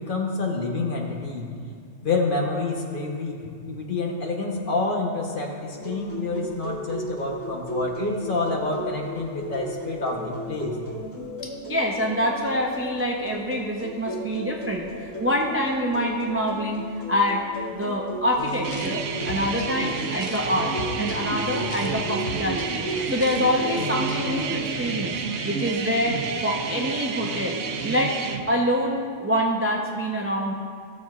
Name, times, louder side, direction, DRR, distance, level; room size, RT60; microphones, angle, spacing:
voice 1, 0.0-1.5 2.0-3.4 3.7-10.8, left 3 dB, 45° left, 0 dB, 1.1 m, -28 dB
sound 1, 5.7-24.6, right 1 dB, 15° left, 2.2 m, -35 dB
voice 2, 11.4-17.4 17.7-20.7 21.0-28.2 28.5-30.5, equal, 20° right, -1 dB, 0.4 m, -26 dB
sound 2, 18.4-24.4, left 1 dB, 75° left, 1.2 m, -37 dB
sound 3, 18.6-28.4, right 5 dB, 75° right, 1.0 m, -30 dB
16.0 x 7.0 x 2.4 m, 2.2 s
omnidirectional pair, 1.3 m